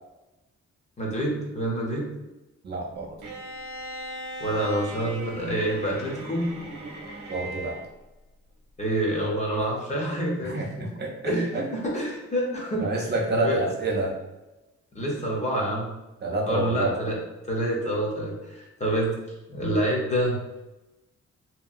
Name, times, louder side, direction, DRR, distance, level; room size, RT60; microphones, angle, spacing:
voice 1, 1.0-2.1 4.4-6.5 8.8-10.6 11.2-13.0 13.4-13.6 14.9-16.0 16.5-17.2 17.5-19.2 19.5-20.4, right 1 dB, 25° left, -3 dB, 0.5 m, -27 dB
voice 2, 2.6-3.2 7.3-7.8 10.4-11.7 12.8-14.1 16.2-16.9, right 2 dB, 35° right, -2 dB, 0.4 m, -28 dB
Bowed string instrument, 3.2-7.9, right 1 dB, 85° right, 0.6 m, -38 dB
2.8 x 2.6 x 2.4 m, 1.0 s
wide cardioid pair, 175°, 29 cm